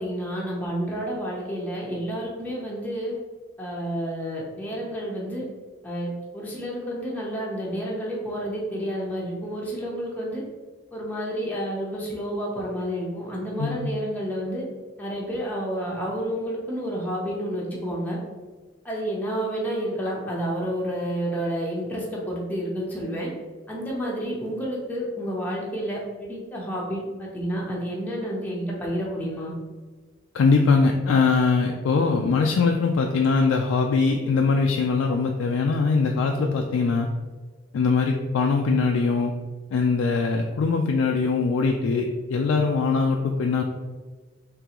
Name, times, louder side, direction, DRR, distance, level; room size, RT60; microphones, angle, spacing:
voice 1, 0.0-3.1 3.6-5.4 5.8-10.4 10.9-14.6 15.0-18.2 18.8-23.3 23.7-29.5, equal, 10° left, -4 dB, 0.7 m, -30 dB
voice 2, 30.3-37.1 37.7-39.3 39.7-43.6, left 4 dB, 85° left, 2 dB, 0.3 m, -22 dB
3.7 x 3.2 x 2.9 m, 1.4 s
head